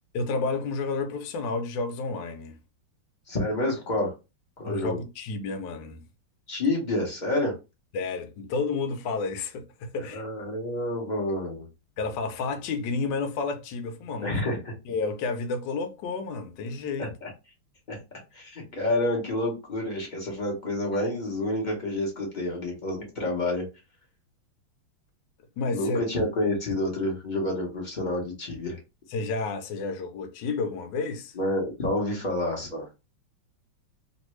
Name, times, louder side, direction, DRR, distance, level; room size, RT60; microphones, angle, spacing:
voice 1, 0.1-2.6 4.6-6.0 7.9-10.2 12.0-14.4 14.9-17.1 25.6-26.0 29.1-31.3, left 4 dB, 70° left, 1.2 m, -31 dB
voice 2, 3.3-4.1 4.6-5.0 6.5-7.5 10.1-11.7 14.2-14.7 17.2-17.3 17.9-18.0 18.3-23.7 25.7-28.8 31.4-32.9, left 1 dB, 40° left, 0.6 m, -28 dB
3.1 x 2.6 x 3.1 m
omnidirectional pair, 2.4 m